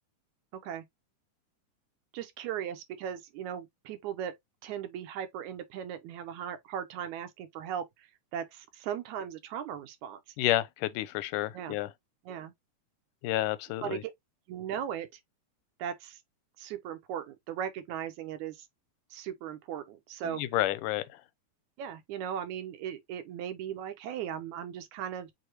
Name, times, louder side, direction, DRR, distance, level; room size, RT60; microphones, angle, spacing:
voice 1, 0.5-0.9 2.1-4.3 4.6-10.2 11.5-11.8 12.3-12.5 13.8-14.1 14.5-15.1 15.8-16.2 16.6-18.7 19.1-20.4 21.8-25.3, right 9 dB, 75° right, 2.1 m, -38 dB
voice 2, 10.4-11.9 13.2-14.0 20.2-21.0, left 15 dB, 90° left, 2.2 m, -30 dB
6.3 x 2.8 x 2.9 m
omnidirectional pair, 3.6 m